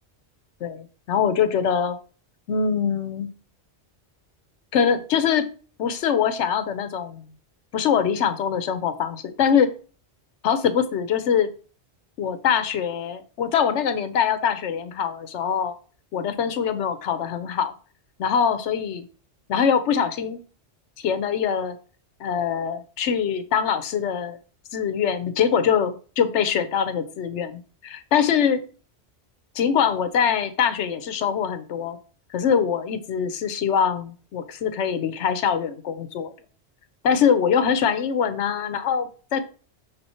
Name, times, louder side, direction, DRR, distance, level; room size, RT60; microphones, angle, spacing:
voice 1, 0.6-2.0 2.5-3.3 4.7-5.5 5.8-7.2 7.7-9.7 10.4-11.5 12.2-15.8 16.1-17.7 18.2-19.1 19.5-20.4 21.0-21.8 22.2-24.4 24.7-28.6 29.5-32.0 32.3-36.3 37.0-39.4, left 7 dB, 90° left, 11 dB, 1.0 m, -23 dB
6.8 x 3.7 x 4.2 m, 0.38 s
omnidirectional pair, 1.1 m